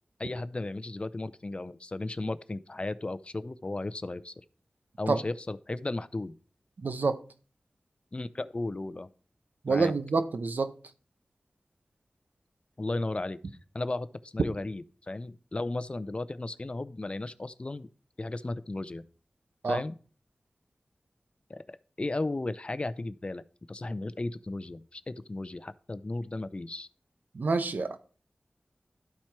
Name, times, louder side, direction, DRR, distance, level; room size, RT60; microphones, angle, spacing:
voice 1, 0.2-4.3 5.0-6.3 8.1-9.1 9.7-9.9 12.8-13.4 13.7-17.9 18.2-19.0 19.7-19.9 21.5-26.9, left 2 dB, 40° left, 0.5 m, -35 dB
voice 2, 6.8-7.2 9.6-10.7 19.6-19.8 27.3-28.0, right 4 dB, 80° right, 0.7 m, -27 dB
12.0 x 4.4 x 4.6 m
wide cardioid pair, 45°, 3 cm